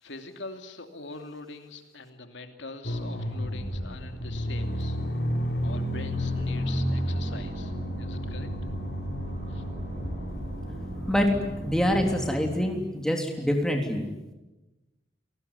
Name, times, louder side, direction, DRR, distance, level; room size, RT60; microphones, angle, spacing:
voice 1, 0.0-5.0 5.6-8.5 9.5-9.6, left 3 dB, 75° left, 6 dB, 2.7 m, -43 dB
sound 1, 2.8-12.5, equal, 55° left, 6.4 m, -32 dB
sound 2, 6.1-12.3, equal, 40° right, 3.5 m, -39 dB
voice 2, 11.6-14.0, equal, 5° left, 2 dB, 3.4 m, -25 dB
28.5 x 19.0 x 9.8 m, 1.1 s
head